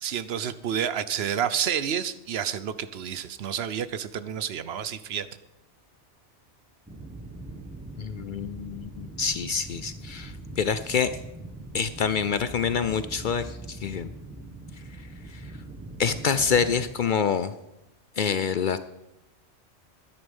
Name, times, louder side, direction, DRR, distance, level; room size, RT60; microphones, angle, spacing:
voice 1, 0.0-5.3, right 8 dB, 65° right, 14 dB, 0.9 m, -29 dB
sound 1, 6.9-16.9, right 2 dB, 10° right, 1.2 m, -41 dB
voice 2, 8.0-11.1 11.7-14.1 15.3-15.5 16.0-17.5 18.2-18.8, left 6 dB, 60° left, 12 dB, 0.6 m, -26 dB
12.5 x 10.0 x 5.4 m, 0.91 s
omnidirectional pair, 1.2 m